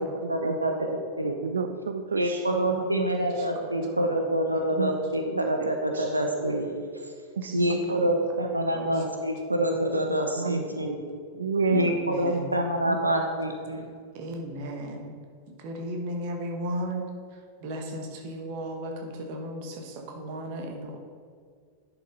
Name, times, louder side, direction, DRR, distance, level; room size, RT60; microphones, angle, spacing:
voice 1, 0.0-1.4 2.1-6.7 7.5-11.0 11.7-13.8, right 1 dB, 85° right, 3 dB, 0.8 m, -26 dB
voice 2, 1.4-2.4 4.8-4.9 5.3-5.7 5.9-6.1 7.4-7.6 7.9-8.0 10.4-10.7 11.4-12.0 12.3-12.4 12.8-13.0, right 5 dB, 70° right, 8 dB, 0.4 m, -30 dB
voice 3, 7.5-8.1 8.7-8.9 11.8-12.5 14.1-15.1 15.6-17.1 17.6-21.0, right 1 dB, 45° right, 2 dB, 1.4 m, -35 dB
10.5 x 5.9 x 4.0 m, 2.1 s
figure-of-eight pair, 90°, 0 cm